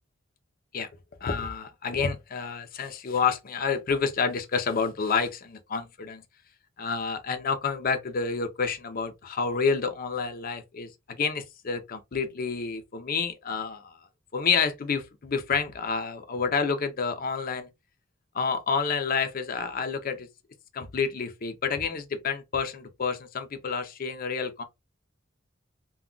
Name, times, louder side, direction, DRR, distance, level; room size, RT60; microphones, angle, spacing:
voice 1, 1.2-6.2 6.8-14.1 14.3-17.7 18.3-20.3 20.7-24.6, left 5 dB, 45° left, 0.5 m, -29 dB
2.2 x 2.2 x 3.7 m
head